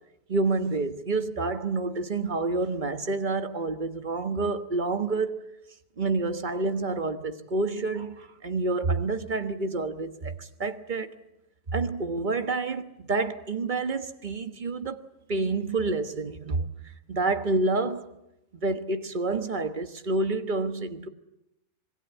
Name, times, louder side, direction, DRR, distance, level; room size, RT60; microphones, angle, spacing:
voice 1, 0.3-5.4 6.0-11.1 11.7-15.0 15.3-18.1 18.5-21.1, right 3 dB, 35° right, 1.4 m, -28 dB
26.0 x 22.0 x 8.3 m
omnidirectional pair, 1.5 m